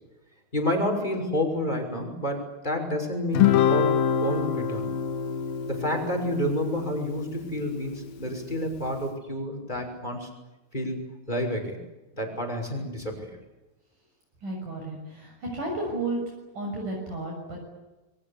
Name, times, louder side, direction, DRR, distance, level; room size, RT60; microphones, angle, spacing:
voice 1, 0.5-4.9 5.7-10.3 10.7-11.0 11.3-11.8 12.1-13.4, left 1 dB, 10° left, 3 dB, 5.8 m, -29 dB
Guitar, 3.3-8.0, left 8 dB, 75° left, 3.1 m, -26 dB
voice 2, 14.4-16.2 16.5-17.6, right 2 dB, 55° right, 0 dB, 8.2 m, -32 dB
28.0 x 23.0 x 8.5 m, 1.1 s
omnidirectional pair, 4.3 m